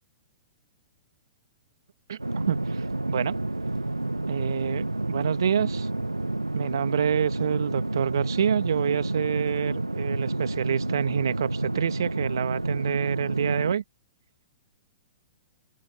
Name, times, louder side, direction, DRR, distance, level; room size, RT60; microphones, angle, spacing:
sound 1, 2.2-13.7, right 2 dB, 85° right, 1.2 m, -29 dB
voice 1, 2.5-3.4 4.3-5.9 6.5-13.8, right 8 dB, 60° right, 1.9 m, -27 dB
open air
figure-of-eight pair, 110°, 2 cm